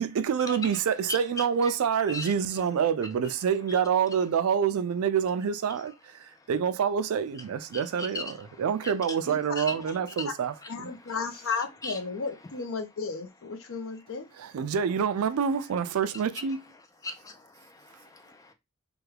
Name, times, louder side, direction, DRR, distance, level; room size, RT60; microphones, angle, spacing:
voice 1, 0.0-10.6 14.4-16.6, right 7 dB, 80° right, 0.3 m, -27 dB
voice 2, 9.3-9.7 10.7-14.3, left 4 dB, 65° left, 0.6 m, -34 dB
voice 3, 17.0-18.5, left 3 dB, 15° left, 0.3 m, -37 dB
3.4 x 2.2 x 3.2 m
head